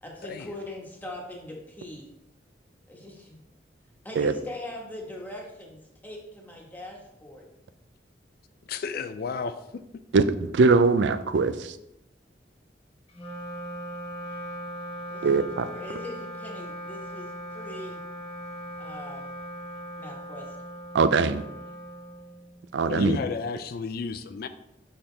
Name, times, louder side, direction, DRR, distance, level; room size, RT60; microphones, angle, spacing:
voice 1, 0.0-2.1 2.9-3.4 4.0-7.5 15.1-18.0 18.8-19.3 20.0-20.6, left 1 dB, 10° left, -1 dB, 1.3 m, -41 dB
voice 2, 8.7-9.6 22.9-24.5, left 5 dB, 60° left, 10 dB, 0.4 m, -32 dB
voice 3, 10.1-11.7 15.2-15.7 20.9-21.4 22.7-23.2, right 4 dB, 80° right, 12 dB, 0.4 m, -21 dB
Wind instrument woodwind instrument, 13.1-22.7, equal, 30° left, 1.1 m, -39 dB
6.3 x 5.9 x 3.3 m, 0.85 s
head